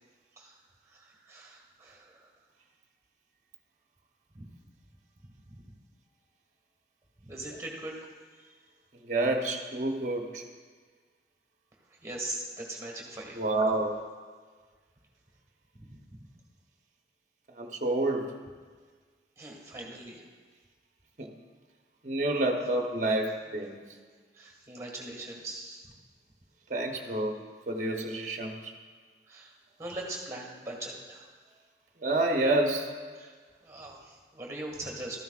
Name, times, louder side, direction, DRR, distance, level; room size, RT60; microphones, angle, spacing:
voice 1, 0.9-2.3 4.3-4.5 5.2-5.6 7.2-8.0 8.4-8.5 11.9-13.4 15.7-16.3 19.4-20.2 24.3-25.9 29.3-29.5 29.8-31.3 33.1-33.3 33.6-35.2, right 2 dB, 20° right, 0 dB, 1.7 m, -41 dB
voice 2, 9.0-10.4 13.3-14.0 17.5-18.3 21.2-21.3 22.0-23.8 26.7-27.4 27.7-28.7 32.0-32.9, right 2 dB, 45° right, 2 dB, 0.9 m, -28 dB
13.0 x 10.5 x 2.4 m, 1.5 s
head